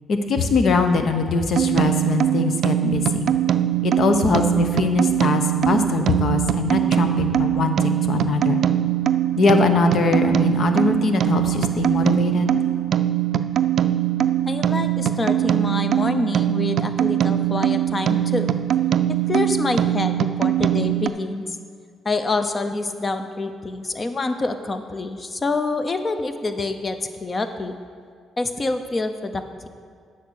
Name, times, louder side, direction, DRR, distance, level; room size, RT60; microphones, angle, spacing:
voice 1, 0.1-3.3 3.8-8.6 9.4-12.6, left 4 dB, 60° left, 7 dB, 0.9 m, -21 dB
sound 1, 1.5-21.1, right 11 dB, 65° right, 0.4 m, -22 dB
voice 2, 14.5-18.5 19.3-21.6 22.0-27.7 28.4-29.7, left 3 dB, 30° left, 8 dB, 0.7 m, -26 dB
9.1 x 5.8 x 6.5 m, 2.1 s
cardioid pair, 90°, 0 cm